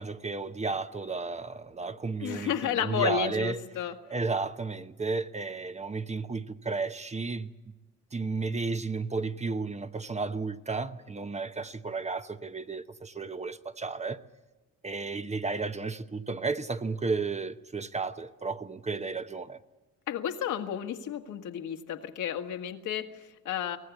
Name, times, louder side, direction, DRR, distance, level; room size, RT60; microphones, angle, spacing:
voice 1, 0.0-3.6 4.1-7.5 8.1-14.2 14.8-19.6, right 4 dB, 20° right, 0.9 m, -33 dB
voice 2, 2.2-4.0 20.1-23.8, left 9 dB, 80° left, 1.8 m, -32 dB
24.0 x 18.5 x 8.3 m
cardioid pair, 90°, 30 cm